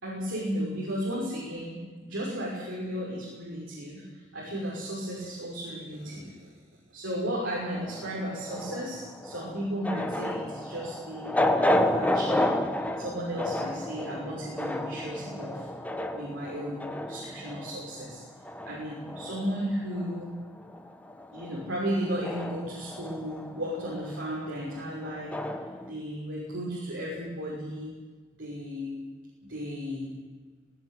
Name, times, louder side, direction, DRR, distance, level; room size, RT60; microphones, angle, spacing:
voice 1, 0.0-6.5 6.9-15.7 16.1-18.2 18.6-20.3 21.3-25.4 25.8-27.9 28.4-29.0 29.5-30.1, equal, 90° right, -5 dB, 6.1 m, -34 dB
sound 1, 7.7-20.4 20.7-25.9, left 1 dB, 10° left, 1.2 m, -32 dB
19.0 x 18.5 x 9.4 m, 1.4 s
head